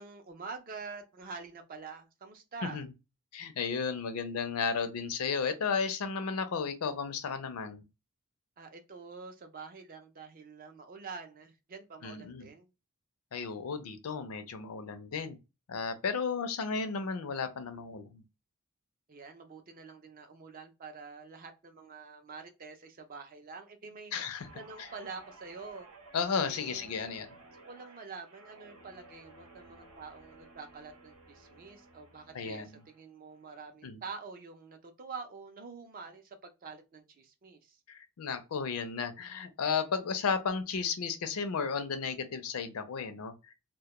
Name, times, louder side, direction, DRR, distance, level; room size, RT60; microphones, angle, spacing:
voice 1, 0.0-2.8 8.6-12.7 19.1-24.1 24.5-25.9 26.5-27.1 27.7-37.8, right 4 dB, 40° right, 0.4 m, -46 dB
voice 2, 3.3-7.9 12.0-12.5 13.3-15.4 15.7-18.2 24.1-24.5 24.8-24.9 26.1-27.4 32.3-32.8 33.8-34.0 37.9-43.5, left 5 dB, 75° left, 0.5 m, -34 dB
Guitar, 24.4-33.0 33.4-33.7, right 2 dB, 85° right, 0.8 m, -55 dB
2.2 x 2.1 x 2.8 m
head